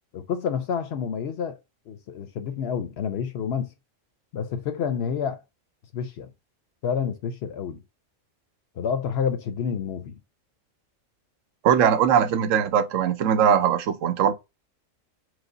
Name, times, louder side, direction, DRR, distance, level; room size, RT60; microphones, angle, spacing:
voice 1, 0.1-1.6 1.9-3.7 4.3-5.4 5.9-6.3 6.8-7.8 8.8-10.2, left 7 dB, 65° left, 0.7 m, -29 dB
voice 2, 11.6-14.3, right 8 dB, 75° right, 1.0 m, -20 dB
4.8 x 2.0 x 3.8 m
omnidirectional pair, 1.3 m